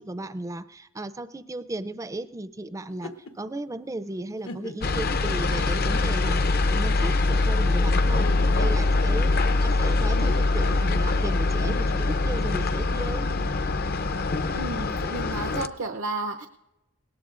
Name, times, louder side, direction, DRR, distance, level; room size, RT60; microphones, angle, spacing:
voice 1, 0.0-13.3, right 2 dB, 15° right, 13 dB, 0.4 m, -35 dB
sound 1, 2.9-3.3 3.9-4.0 4.4-5.0 5.7-5.8 8.0-8.6 9.9-10.4 11.5-12.0 12.9-13.8, left 1 dB, 85° left, 1.3 m, -38 dB
sound 2, 4.8-15.7, left 3 dB, 50° left, 0.6 m, -23 dB
voice 2, 14.5-16.5, right 2 dB, 90° right, 4 dB, 0.8 m, -32 dB
20.5 x 18.0 x 2.5 m, 0.95 s
head